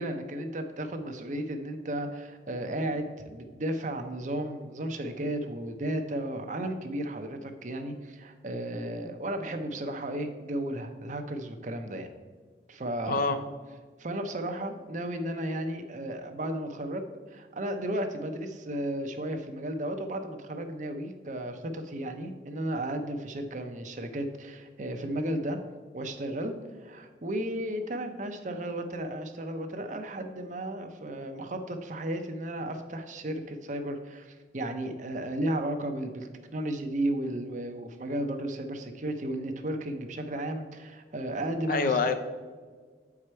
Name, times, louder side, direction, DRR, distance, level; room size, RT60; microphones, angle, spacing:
voice 1, 0.0-12.1 12.7-13.2 14.0-25.6 25.9-26.5 26.8-42.0, right 1 dB, 45° right, 7 dB, 0.7 m, -34 dB
voice 2, 13.1-13.4 41.7-42.1, left 4 dB, 50° left, 8 dB, 0.5 m, -25 dB
7.8 x 4.8 x 4.4 m, 1.5 s
head